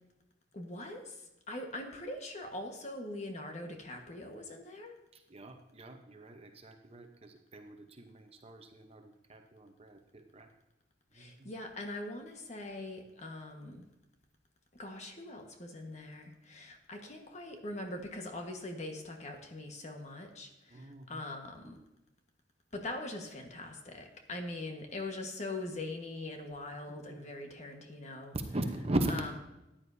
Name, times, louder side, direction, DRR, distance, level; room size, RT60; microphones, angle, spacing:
voice 1, 0.5-4.9 11.1-13.8 14.7-21.8 22.7-28.4 29.1-29.3, left 2 dB, 40° left, 3 dB, 1.4 m, -42 dB
voice 2, 5.1-10.5 11.1-11.5 20.7-21.2 21.6-21.8 27.1-27.2 28.5-29.1, right 1 dB, 30° right, 5 dB, 0.9 m, -39 dB
14.0 x 10.0 x 2.7 m, 0.94 s
head